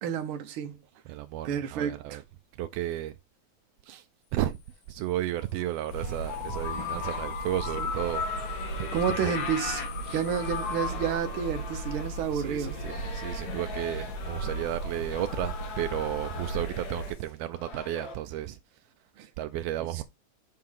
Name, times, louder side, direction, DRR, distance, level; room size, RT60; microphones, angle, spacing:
voice 1, 0.0-0.8 1.4-2.2 7.8-7.9 8.9-9.8 10.1-12.7 19.2-19.3, right 8 dB, 65° right, 1.3 m, -30 dB
voice 2, 1.1-2.2 2.6-3.2 3.8-4.0 4.3-4.6 4.9-8.3 8.8-9.3 10.0-10.2 12.3-18.6 19.4-20.0, right 13 dB, 85° right, 1.4 m, -33 dB
sound 1, 5.3-7.2 7.5-18.2, left 4 dB, 45° left, 1.4 m, -44 dB
sound 2, 5.9-17.1, right 1 dB, 90° left, 3.3 m, -37 dB
sound 3, 6.2-13.0, left 7 dB, 70° left, 2.5 m, -37 dB
6.7 x 3.8 x 4.6 m
omnidirectional pair, 3.4 m